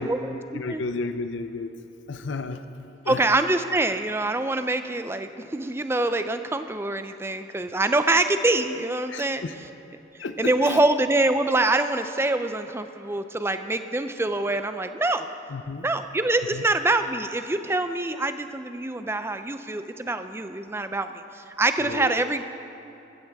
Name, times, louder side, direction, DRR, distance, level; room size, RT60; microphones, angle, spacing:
voice 1, 0.0-0.8 3.1-9.4 10.4-15.3 15.8-22.4, right 2 dB, 15° right, 9 dB, 0.4 m, -25 dB
voice 2, 0.5-1.7 2.1-2.6 3.0-3.2 9.1-9.5 10.2-10.8 15.5-15.9 16.5-16.6 21.8-22.2, left 3 dB, 75° left, 9 dB, 0.6 m, -32 dB
15.0 x 13.5 x 3.5 m, 2.9 s
head